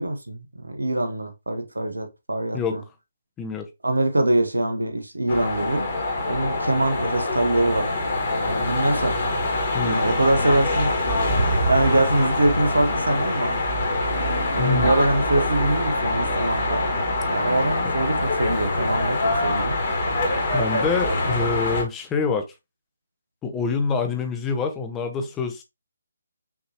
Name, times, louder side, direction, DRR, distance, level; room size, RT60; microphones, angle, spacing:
voice 1, 0.0-2.8 3.8-5.9 6.3-7.9 8.3-9.2 9.8-11.0 11.7-13.6 14.5-16.9 17.3-19.7 21.0-21.2, right 1 dB, 85° right, 1.0 m, -24 dB
sound 1, 5.3-21.8, left 1 dB, 40° left, 1.7 m, -24 dB
voice 2, 14.6-14.9 20.5-22.5 23.4-25.6, left 5 dB, 15° left, 0.7 m, -26 dB
5.7 x 3.0 x 2.9 m
figure-of-eight pair, 145°, 0 cm